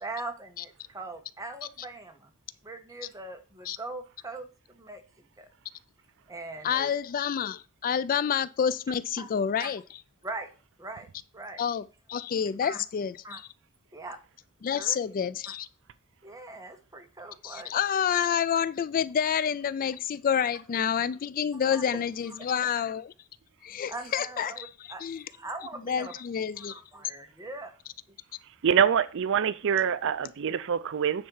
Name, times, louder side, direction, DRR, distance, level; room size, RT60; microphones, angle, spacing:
voice 1, 0.0-2.3 2.6-5.5 6.3-6.9 9.2-9.3 9.6-9.8 10.2-10.5 10.8-11.1 11.3-11.6 12.6-12.8 13.2-13.4 13.9-14.2 14.7-15.0 15.5-15.6 16.2-17.7 21.7-21.8 22.3-22.6 23.9-25.0 25.3-26.2 26.6-27.8 28.1-28.2, right 2 dB, 15° right, 1.3 m, -41 dB
voice 2, 6.6-9.8 11.6-13.4 14.6-15.7 17.4-23.1 23.6-25.2 25.9-26.8, left 8 dB, 40° left, 0.3 m, -28 dB
voice 3, 28.6-31.3, right 8 dB, 60° right, 0.4 m, -25 dB
9.5 x 4.4 x 5.5 m
head